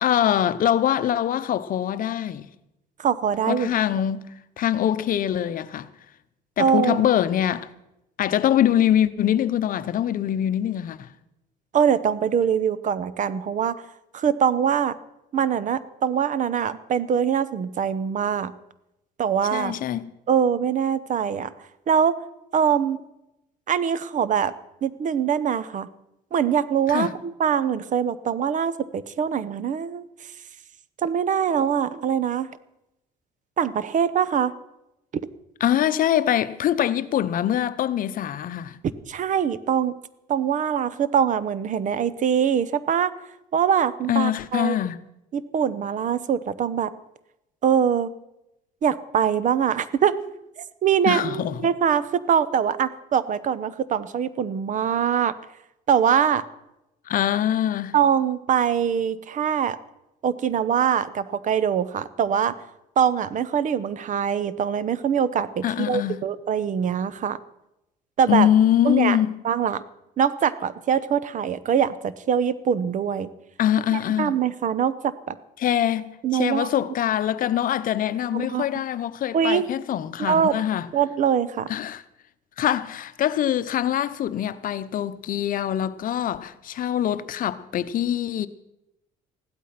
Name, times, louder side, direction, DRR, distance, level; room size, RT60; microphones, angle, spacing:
voice 1, 0.0-2.5 3.5-5.9 6.6-7.7 8.2-11.1 19.5-20.1 26.9-27.1 35.6-38.8 44.1-45.0 51.0-51.7 57.1-58.0 65.6-66.3 68.3-69.4 73.6-74.3 75.6-80.9 81.7-82.0 82.6-88.5, left 11 dB, 55° left, 0.8 m, -23 dB
voice 2, 3.0-3.7 6.6-7.1 11.7-13.8 14.1-15.0 15.3-18.5 19.2-19.7 20.3-21.5 21.9-22.1 22.5-23.0 23.7-24.5 24.8-25.9 26.3-30.1 31.0-32.5 33.6-34.6 39.1-40.0 40.3-43.1 43.5-44.8 45.3-46.9 47.6-48.1 48.8-50.1 50.8-55.3 55.9-56.4 57.9-59.8 60.2-62.5 63.0-67.4 68.2-68.5 68.8-69.2 69.4-69.8 70.2-73.3 73.9-75.4 76.2-76.7 78.3-78.6 79.3-79.7 80.2-80.5 80.9-81.7, right 8 dB, 50° right, 0.9 m, -23 dB
15.5 x 12.0 x 5.8 m
cardioid pair, 110°, 17 cm